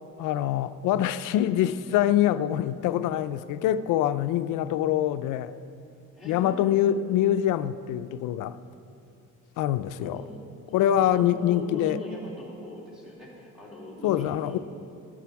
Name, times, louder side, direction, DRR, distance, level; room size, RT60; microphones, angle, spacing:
voice 1, 0.2-5.5 6.3-8.6 9.6-10.2 10.7-12.0 14.0-14.6, left 11 dB, 90° left, 0.5 m, -25 dB
voice 2, 6.1-7.1 10.0-14.6, left 1 dB, ahead, 2.9 m, -41 dB
14.5 x 13.0 x 4.6 m
cardioid pair, 175°, 30 cm